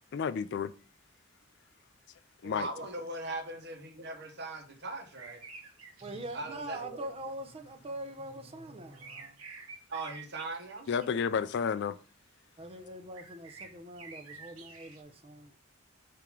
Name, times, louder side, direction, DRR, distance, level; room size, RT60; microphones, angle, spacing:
voice 1, 0.1-0.7 2.4-2.7 10.9-12.0, left 6 dB, 55° left, 0.3 m, -31 dB
voice 2, 2.4-5.4 6.3-7.0 9.9-10.9, right 2 dB, 55° right, 1.1 m, -40 dB
sound 1, 5.1-6.8 8.9-11.1 11.5-11.6 13.1-15.0, right 4 dB, 90° right, 1.3 m, -49 dB
voice 3, 6.0-9.4 12.6-15.6, right 1 dB, 25° right, 0.6 m, -43 dB
7.1 x 2.9 x 4.8 m
head